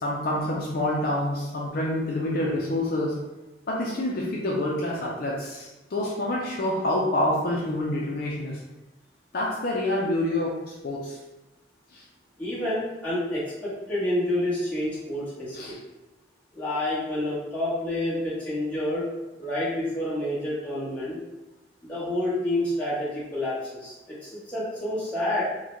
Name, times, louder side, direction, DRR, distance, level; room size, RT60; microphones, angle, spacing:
voice 1, 0.0-3.2 3.7-8.6 9.3-11.2 11.9-12.0 15.5-15.8, left 1 dB, 50° left, -4 dB, 0.5 m, -27 dB
voice 2, 12.4-15.8 16.5-19.1 19.4-21.2 21.8-23.9 24.2-25.4, left 1 dB, 5° left, -11 dB, 1.2 m, -28 dB
3.8 x 2.2 x 3.0 m, 1.1 s
head